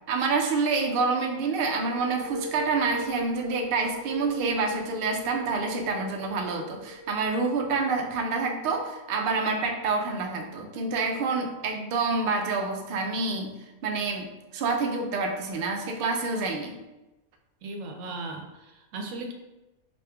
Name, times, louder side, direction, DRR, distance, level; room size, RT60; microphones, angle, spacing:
voice 1, 0.1-13.5 13.8-16.8, right 4 dB, 65° right, 2 dB, 0.6 m, -27 dB
sound 1, 1.6-9.2, left 2 dB, 20° right, 0.7 m, -41 dB
voice 2, 17.6-19.3, right 2 dB, 85° right, 3 dB, 1.0 m, -37 dB
5.0 x 2.5 x 2.3 m, 1.0 s
omnidirectional pair, 1.4 m